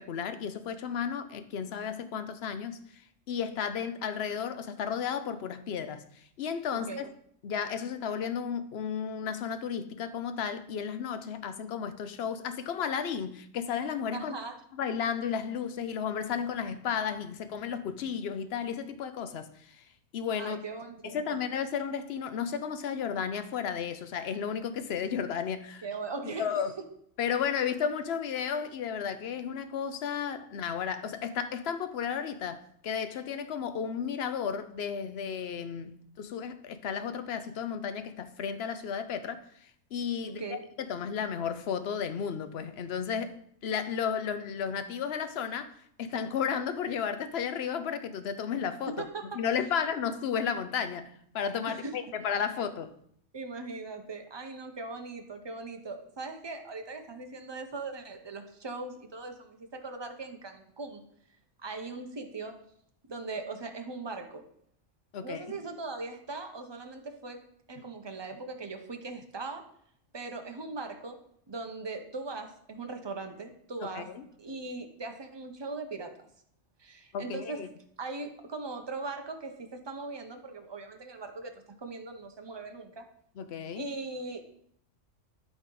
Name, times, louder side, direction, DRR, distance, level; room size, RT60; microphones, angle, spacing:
voice 1, 0.0-3.0 3.3-7.1 7.4-14.3 14.7-19.8 20.1-20.6 21.0-25.9 26.4-26.7 27.2-48.9 49.3-52.9 65.1-65.4 74.0-74.2 77.1-77.7 83.4-83.8, left 7 dB, 65° left, 0.8 m, -33 dB
voice 2, 6.7-7.0 14.1-14.6 20.4-21.5 25.8-26.8 40.2-40.6 48.9-49.4 51.6-52.0 53.3-61.0 61.6-62.5 63.1-64.4 65.2-67.4 67.7-69.6 70.1-71.2 71.5-74.1 74.4-76.1 76.8-77.6 78.0-83.0 83.8-84.4, right 3 dB, 25° right, 0.7 m, -39 dB
11.5 x 4.2 x 3.9 m
omnidirectional pair, 1.3 m